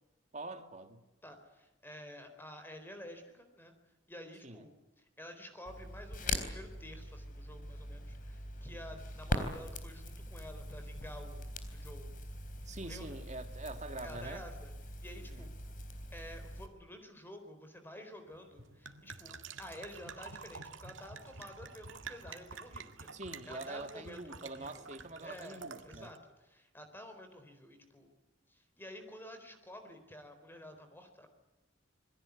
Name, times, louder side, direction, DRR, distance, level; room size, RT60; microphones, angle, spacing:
voice 1, 0.3-1.0 4.4-4.7 12.7-14.4 15.2-15.5 23.1-26.1, right 2 dB, 40° right, 2.2 m, -45 dB
voice 2, 1.2-3.7 4.1-11.4 11.7-12.1 12.8-13.2 14.0-14.7 15.0-15.5 16.1-23.2 23.5-24.9 25.2-28.1 28.5-31.3, left 1 dB, 10° left, 4.0 m, -50 dB
Crackle, 5.7-16.7, left 1 dB, 45° left, 3.8 m, -41 dB
sound 1, 18.3-26.2, right 5 dB, 85° right, 2.0 m, -49 dB
27.5 x 21.5 x 8.4 m
head